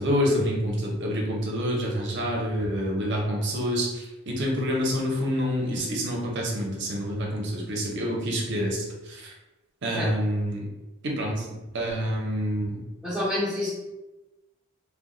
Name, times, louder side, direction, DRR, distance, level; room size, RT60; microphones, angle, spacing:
voice 1, 0.0-9.3 9.8-10.6 11.0-11.5 11.7-12.8, equal, 55° right, -2 dB, 0.7 m, -27 dB
voice 2, 13.0-13.7, left 1 dB, 5° right, -10 dB, 0.6 m, -27 dB
2.2 x 2.2 x 3.7 m, 1.1 s
head